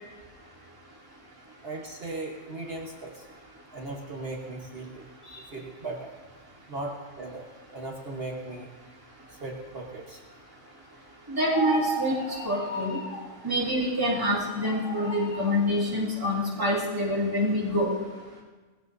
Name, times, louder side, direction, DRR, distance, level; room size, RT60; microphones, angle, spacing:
voice 1, 1.6-3.2 3.7-6.1 6.7-7.5 7.7-8.7 9.3-10.2 13.7-13.8, right 2 dB, 50° right, 0 dB, 1.5 m, -38 dB
voice 2, 11.4-12.1 12.4-13.0 13.4-17.9, equal, 15° right, -6 dB, 2.7 m, -26 dB
sound 1, 11.5-13.3 14.6-15.6, right 1 dB, 75° left, 2.1 m, -34 dB
20.0 x 16.5 x 2.7 m, 1.3 s
omnidirectional pair, 1.3 m